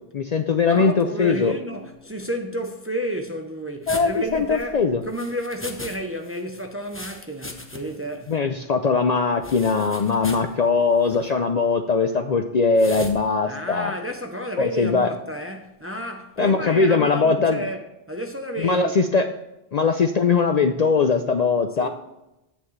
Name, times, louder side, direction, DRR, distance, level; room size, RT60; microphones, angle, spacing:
voice 1, 0.1-1.5 3.9-5.0 8.3-13.9 14.6-15.1 16.4-17.7 18.6-19.3 19.7-21.9, left 4 dB, 50° left, 0.5 m, -20 dB
voice 2, 0.7-8.4 13.5-19.0 21.8-21.9, equal, 15° right, 0.6 m, -31 dB
sound 1, 3.9-6.0 6.2-8.0 8.3-8.4 9.4-10.5 11.0-11.3 12.8-13.2, left 1 dB, 15° left, 0.8 m, -38 dB
10.0 x 8.2 x 3.2 m
omnidirectional pair, 1.1 m